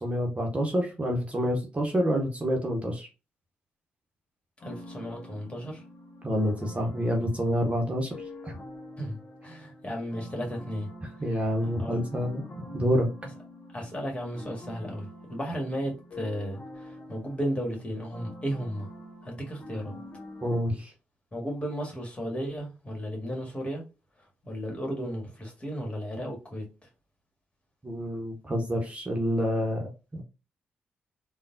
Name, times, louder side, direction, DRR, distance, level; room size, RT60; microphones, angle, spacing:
voice 1, 0.0-3.1 6.2-8.1 8.4-8.6 11.2-12.4 12.7-13.1 20.4-20.9 27.8-30.2, equal, 25° right, 1.1 m, -28 dB
sound 1, 4.6-20.6, left 1 dB, 40° left, 1.2 m, -46 dB
voice 2, 4.6-5.8 9.0-9.2 9.4-10.9 11.6-12.0 13.7-18.9 19.2-20.0 21.3-23.8 24.4-26.6, equal, 25° left, 1.7 m, -34 dB
3.7 x 2.3 x 2.6 m
hypercardioid pair, 40°, 5 cm